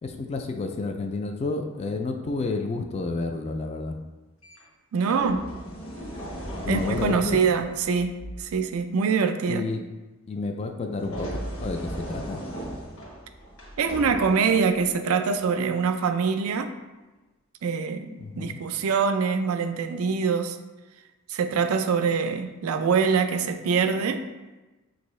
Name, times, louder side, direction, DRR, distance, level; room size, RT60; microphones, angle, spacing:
voice 1, 0.0-4.0 6.7-7.4 9.5-9.8 10.3-12.4 18.2-18.6, left 3 dB, 30° left, 4 dB, 0.3 m, -30 dB
sound 1, 4.4-4.6 5.1-8.6 11.0-15.0 16.0-16.2, right 1 dB, 75° left, 1.1 m, -37 dB
voice 2, 4.9-5.5 6.7-9.7 13.8-16.7 17.6-20.6 21.3-24.3, right 5 dB, 90° right, 8 dB, 0.4 m, -24 dB
6.4 x 2.6 x 3.1 m, 1.1 s
head